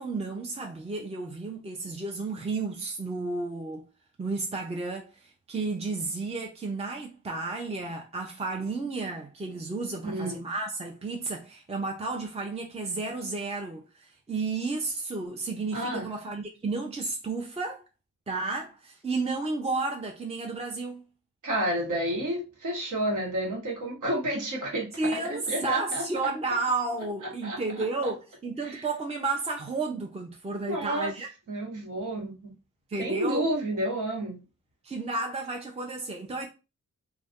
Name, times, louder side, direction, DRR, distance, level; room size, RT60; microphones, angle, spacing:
voice 1, 0.0-3.8 4.2-17.8 18.3-21.0 25.0-31.3 32.9-33.4 34.8-36.5, right 3 dB, 20° right, 0.6 m, -32 dB
voice 2, 10.0-10.4 15.7-16.1 21.4-24.9 25.5-26.3 27.4-28.1 28.6-28.9 30.7-31.1 31.5-32.5 33.0-34.4, right 1 dB, 70° right, 1.3 m, -30 dB
2.5 x 2.2 x 3.5 m
cardioid pair, 60°, 32 cm